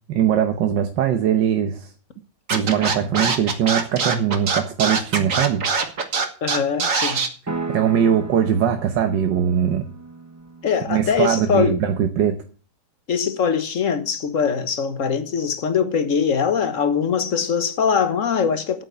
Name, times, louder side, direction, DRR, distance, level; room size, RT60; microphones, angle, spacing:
voice 1, 0.1-1.9 2.5-5.6 7.7-9.9 10.9-12.4, right 9 dB, 75° right, 1.6 m, -21 dB
Scratching (performance technique), 2.5-7.3, right 5 dB, 45° right, 1.9 m, -22 dB
voice 2, 6.4-7.2 10.6-11.8 13.1-18.8, left 6 dB, 50° left, 1.5 m, -22 dB
sound 1, 7.5-11.6, right 3 dB, 15° right, 0.6 m, -35 dB
9.0 x 8.6 x 8.1 m
omnidirectional pair, 2.0 m